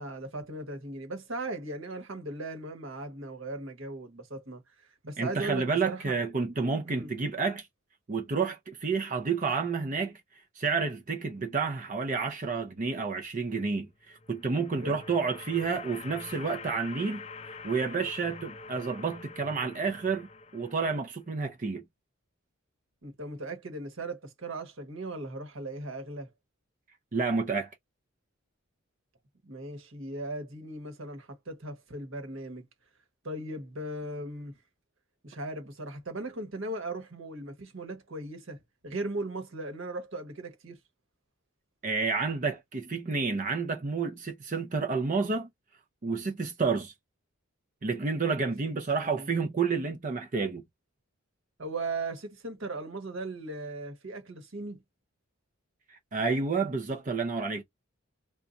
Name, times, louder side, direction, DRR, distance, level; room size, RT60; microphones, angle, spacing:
voice 1, 0.0-6.2 6.8-7.1 14.7-15.0 23.0-26.3 29.4-32.6 33.2-34.6 35.2-40.8 48.6-48.7 49.0-49.3 51.6-54.8, right 2 dB, 60° right, 1.1 m, -38 dB
voice 2, 5.2-7.7 8.1-10.2 10.6-17.2 17.5-21.8 27.1-27.7 41.8-45.5 46.0-46.9 47.8-50.6 55.9-57.6, right 4 dB, 35° right, 0.5 m, -30 dB
sound 1, 14.1-21.2, left 4 dB, 30° left, 0.4 m, -45 dB
2.5 x 2.3 x 3.9 m
head